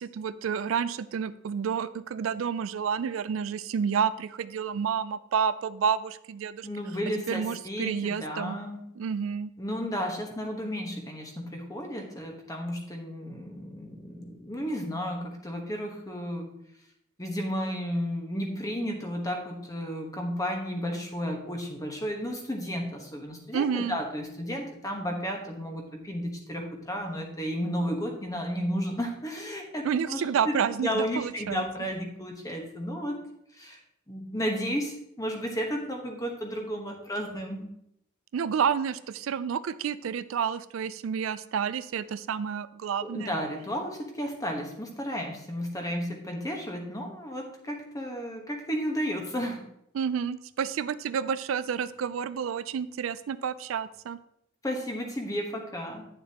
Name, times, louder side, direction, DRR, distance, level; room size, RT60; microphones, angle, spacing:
voice 1, 0.0-6.7 7.3-8.6 9.0-9.5 23.5-24.0 29.8-31.6 38.3-43.3 49.9-54.2, right 7 dB, 85° right, 15 dB, 0.4 m, -30 dB
voice 2, 6.6-8.9 9.6-16.5 17.2-30.5 30.8-33.2 33.6-33.8 34.1-37.7 43.0-49.6 54.6-56.0, equal, 15° left, 2 dB, 1.2 m, -33 dB
9.3 x 6.6 x 2.9 m, 0.77 s
head